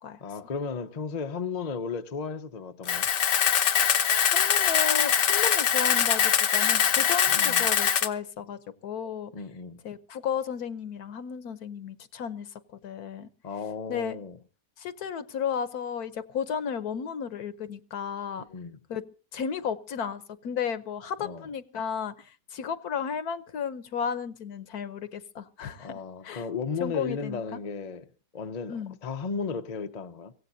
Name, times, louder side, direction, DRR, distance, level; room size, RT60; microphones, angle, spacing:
voice 1, 0.2-3.1 7.3-7.7 9.3-9.8 13.4-14.4 18.4-18.8 21.2-21.5 25.8-28.1 28.3-30.3, left 5 dB, 35° left, 0.7 m, -35 dB
Camera, 2.9-8.1, left 8 dB, 90° left, 1.7 m, -23 dB
voice 2, 4.0-9.3 9.8-12.5 12.8-13.3 13.9-14.2 14.8-18.4 18.9-19.0 19.3-26.4 26.8-27.6 28.7-29.0, left 7 dB, 70° left, 1.4 m, -33 dB
24.0 x 16.5 x 2.7 m
omnidirectional pair, 1.7 m